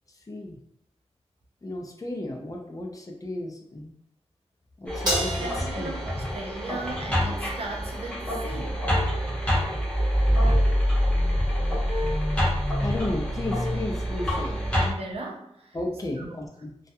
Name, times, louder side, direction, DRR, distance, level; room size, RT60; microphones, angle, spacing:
voice 1, 0.3-0.6 1.6-3.9 4.8-5.5 5.8-5.9 12.8-14.6 15.7-16.7, left 1 dB, 30° left, 1 dB, 0.5 m, -33 dB
sound 1, 4.9-14.9, equal, 10° left, 0.9 m, -26 dB
Crash cymbal, 5.1-7.6, right 1 dB, 35° right, 1.2 m, -32 dB
voice 2, 5.4-8.8 14.4-14.5 14.7-15.8 16.2-16.4, right 2 dB, 60° right, 1 dB, 0.4 m, -37 dB
2.3 x 2.1 x 2.7 m, 0.71 s
wide cardioid pair, 100°, 11 cm